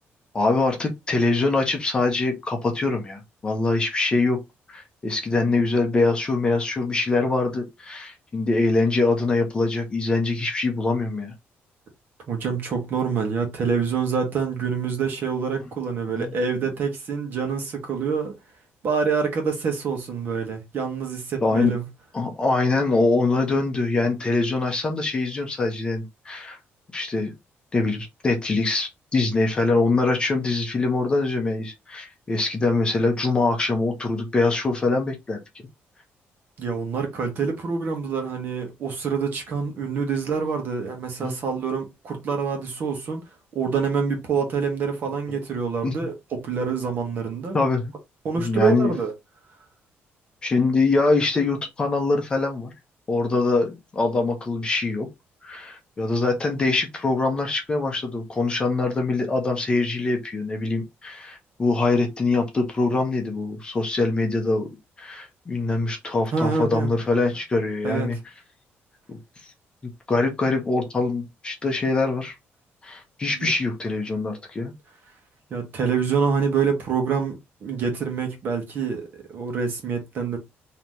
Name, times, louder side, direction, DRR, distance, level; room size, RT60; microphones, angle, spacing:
voice 1, 0.3-4.4 4.7-11.3 16.2-16.3 21.4-21.7 22.1-26.6 26.9-27.3 27.7-35.4 41.2-41.4 45.8-46.0 47.5-47.9 48.4-48.9 50.4-52.7 53.1-55.1 55.4-64.7 65.0-68.2 69.1-69.2 69.8-72.3 72.8-74.7, left 3 dB, 20° left, 0.8 m, -23 dB
voice 2, 12.3-18.3 18.8-21.9 36.6-43.2 43.5-47.6 48.2-49.1 66.3-66.9 67.8-68.2 73.3-73.5 75.5-80.4, right 5 dB, 50° right, 1.3 m, -26 dB
3.9 x 2.9 x 3.1 m
cardioid pair, 175°, 4 cm